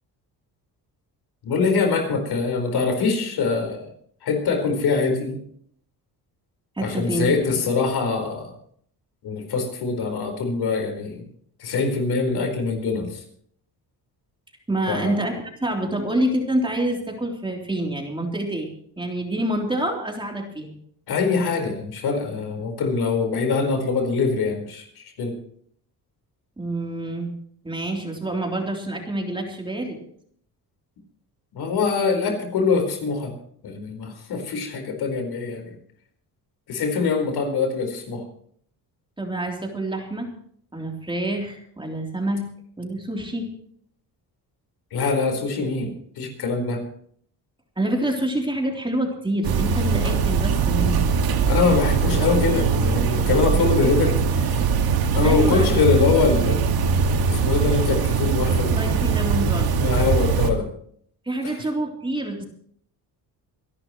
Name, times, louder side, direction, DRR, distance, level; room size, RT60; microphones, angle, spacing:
voice 1, 1.4-3.9 4.2-5.4 6.8-8.5 9.2-11.2 11.6-13.2 14.9-15.2 21.1-25.3 31.5-33.3 33.6-35.8 36.7-38.2 44.9-46.8 51.5-54.7 55.1-56.6 57.3-58.9 59.8-60.7 61.4-61.6, left 4 dB, 70° left, 4 dB, 4.6 m, -23 dB
voice 2, 6.8-7.5 14.7-18.7 19.0-20.7 26.6-27.3 27.6-30.0 39.2-40.3 40.7-42.5 42.8-43.5 47.8-51.1 55.2-55.7 58.8-59.8 61.3-62.5, right 1 dB, 10° right, 1 dB, 3.5 m, -27 dB
sound 1, 49.4-60.5, right 5 dB, 65° right, 2.1 m, -21 dB
26.0 x 12.0 x 3.1 m, 0.62 s
cardioid pair, 115°, 40 cm